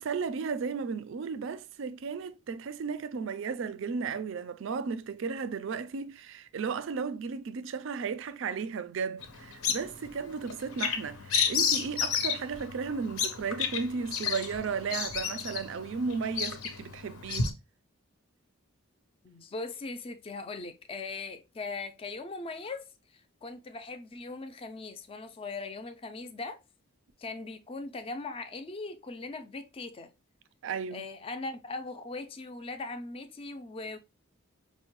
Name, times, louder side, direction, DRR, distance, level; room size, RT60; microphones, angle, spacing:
voice 1, 0.0-17.6 30.6-31.0, right 5 dB, 60° right, 0.4 m, -34 dB
Bird vocalization bird call bird song, 9.2-17.5, left 6 dB, 85° left, 0.7 m, -32 dB
voice 2, 19.2-26.6 27.2-30.1 30.9-34.0, left 3 dB, 25° left, 0.4 m, -40 dB
5.1 x 2.1 x 2.9 m
head